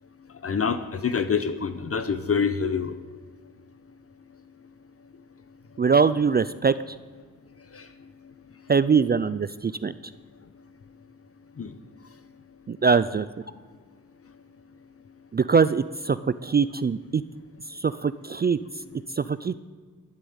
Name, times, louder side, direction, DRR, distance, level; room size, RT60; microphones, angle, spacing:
voice 1, 0.4-0.8 1.0-2.9 11.6-11.7, left 6 dB, 40° left, 10 dB, 0.8 m, -25 dB
voice 2, 5.8-6.7 8.7-9.9 12.7-13.3 15.3-16.2 16.4-17.2 17.8-18.6 19.2-19.5, right 5 dB, 30° right, 15 dB, 0.4 m, -22 dB
11.5 x 10.0 x 8.6 m, 1.6 s
wide cardioid pair, 130°, 34 cm